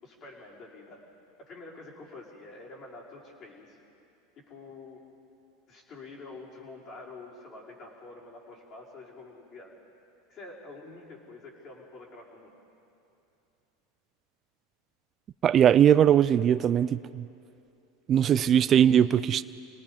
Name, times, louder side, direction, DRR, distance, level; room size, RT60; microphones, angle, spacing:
voice 1, 0.0-1.0 1.4-3.8 4.4-5.0 5.7-9.8 10.3-12.5, left 3 dB, 40° left, 5.4 m, -47 dB
voice 2, 15.4-17.2 18.1-19.4, right 9 dB, 35° right, 0.5 m, -20 dB
28.5 x 19.0 x 5.4 m
hypercardioid pair, 105°, 0 cm